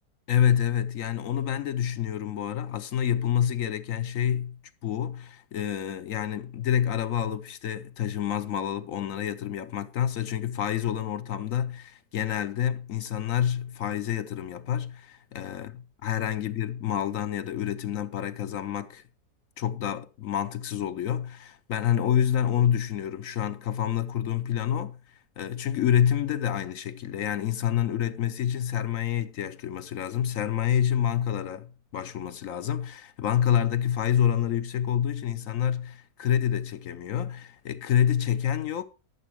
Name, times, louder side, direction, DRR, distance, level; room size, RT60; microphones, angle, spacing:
voice 1, 0.3-4.6 4.8-15.7 16.0-19.0 19.6-25.0 25.4-38.8, left 10 dB, 65° left, 1.0 m, -27 dB
12.5 x 7.2 x 4.6 m
omnidirectional pair, 1.8 m